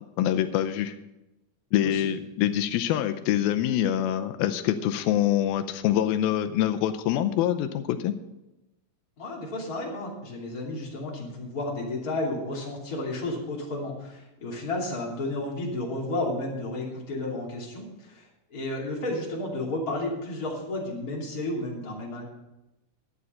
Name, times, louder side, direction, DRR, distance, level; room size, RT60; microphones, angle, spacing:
voice 1, 0.2-1.0 1.7-8.1, left 11 dB, 90° left, 9 dB, 2.5 m, -25 dB
voice 2, 9.2-22.2, left 2 dB, 25° left, -3 dB, 2.8 m, -32 dB
11.5 x 9.4 x 5.5 m, 0.94 s
omnidirectional pair, 4.3 m